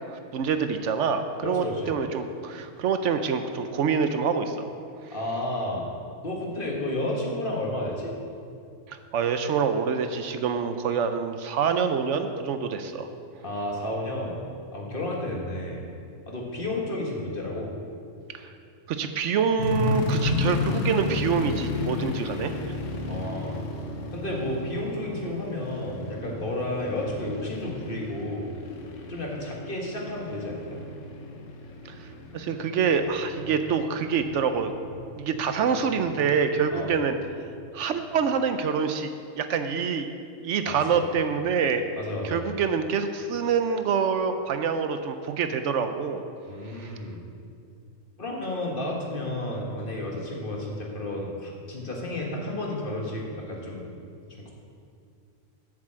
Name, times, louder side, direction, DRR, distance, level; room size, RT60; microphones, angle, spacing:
voice 1, 0.3-4.7 8.9-13.1 18.3-18.5 18.9-22.5 31.9-34.7 35.2-37.2 37.7-39.1 39.4-40.1 40.4-41.8 42.2-46.2 46.8-46.9, right 6 dB, 70° right, 8 dB, 0.9 m, -26 dB
voice 2, 1.4-2.0 5.1-5.9 6.2-8.1 13.4-14.4 14.7-15.8 16.3-17.8 23.1-23.6 24.1-28.5 29.1-30.8 36.7-36.9 40.7-41.1 42.0-42.4 46.5-47.2 48.2-53.9 54.4-54.5, left 1 dB, 45° left, -2 dB, 1.7 m, -32 dB
sound 1, 19.6-36.6 37.2-37.3 37.8-38.1, left 3 dB, 75° left, 1.3 m, -33 dB
7.5 x 7.3 x 7.5 m, 2.4 s
omnidirectional pair, 1.3 m